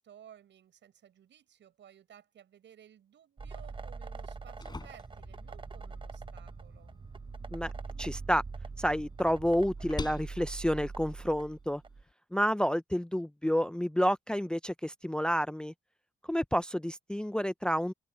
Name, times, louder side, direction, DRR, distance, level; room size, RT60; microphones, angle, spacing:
voice 1, 0.0-6.9, right 10 dB, 65° right, 7.5 m, -57 dB
sound 1, 3.4-12.0, right 4 dB, 25° right, 0.9 m, -43 dB
sound 2, 4.2-12.1, left 3 dB, 20° left, 6.0 m, -48 dB
voice 2, 8.0-8.4 8.8-11.8 12.3-15.7 16.3-17.9, equal, 5° left, 0.7 m, -29 dB
cardioid pair, 90°, 20 cm